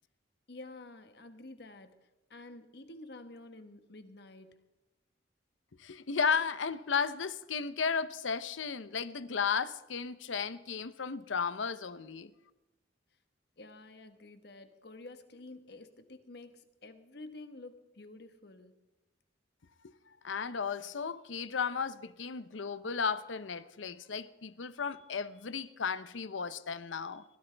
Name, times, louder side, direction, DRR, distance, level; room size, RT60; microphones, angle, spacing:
voice 1, 0.5-4.6 13.6-18.7, left 2 dB, 60° left, 1.3 m, -50 dB
voice 2, 5.8-12.3 19.8-19.9 20.2-27.2, left 6 dB, 90° left, 0.7 m, -34 dB
21.5 x 15.0 x 3.4 m
head